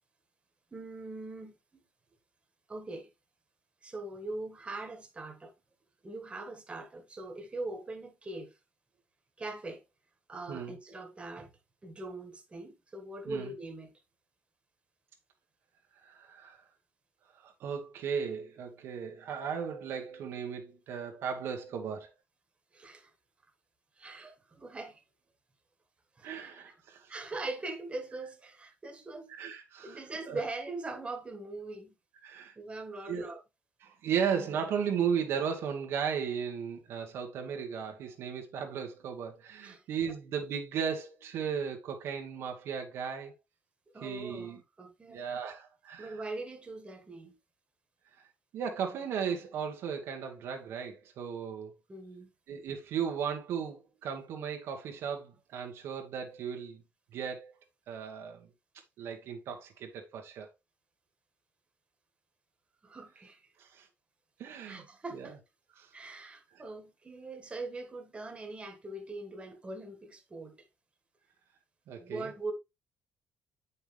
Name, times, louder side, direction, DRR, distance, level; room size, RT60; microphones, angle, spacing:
voice 1, 0.7-1.6 2.7-3.1 3.8-5.5 6.0-8.5 9.4-9.8 10.3-11.5 11.8-14.0 22.7-23.1 24.0-25.0 26.2-26.7 27.1-29.3 29.8-31.9 32.5-33.4 39.6-39.8 43.9-45.2 46.0-47.4 51.9-52.3 62.8-63.4 64.6-65.4 65.9-70.6 72.0-72.5, right 2 dB, 25° right, 1.6 m, -41 dB
voice 2, 16.0-16.6 17.3-22.1 26.2-27.1 29.3-30.0 30.3-30.4 32.2-32.5 33.1-33.3 33.8-43.3 44.0-44.6 45.1-46.2 48.2-48.3 48.5-51.7 52.5-56.8 57.1-57.6 57.9-58.5 59.0-60.5 63.6-63.9 64.4-64.8 65.1-65.3 65.8-65.9 71.9-72.3, right 7 dB, 75° right, 1.3 m, -36 dB
7.1 x 5.5 x 3.2 m
cardioid pair, 90°, 4 cm